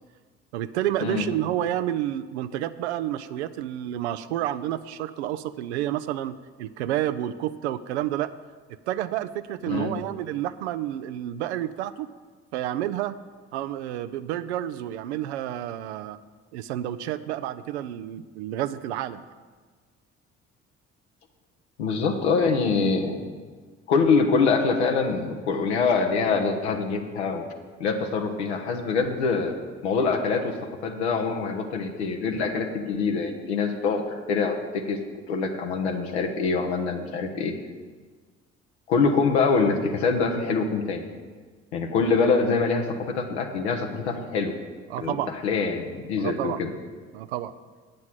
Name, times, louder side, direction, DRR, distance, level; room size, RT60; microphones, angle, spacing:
voice 1, 0.5-8.3 8.9-12.1 12.5-13.2 13.5-16.2 16.5-19.2 44.9-45.3 46.2-46.6 47.1-47.5, right 12 dB, 85° right, 13 dB, 0.5 m, -30 dB
voice 2, 9.7-10.0 21.8-23.2 23.9-27.4 27.8-29.5 29.8-30.6 30.8-35.0 35.3-37.5 38.9-41.1 41.7-44.5 45.0-46.7, left 4 dB, 90° left, 3 dB, 0.9 m, -24 dB
8.3 x 6.5 x 7.4 m, 1.5 s
hypercardioid pair, 50°, 32 cm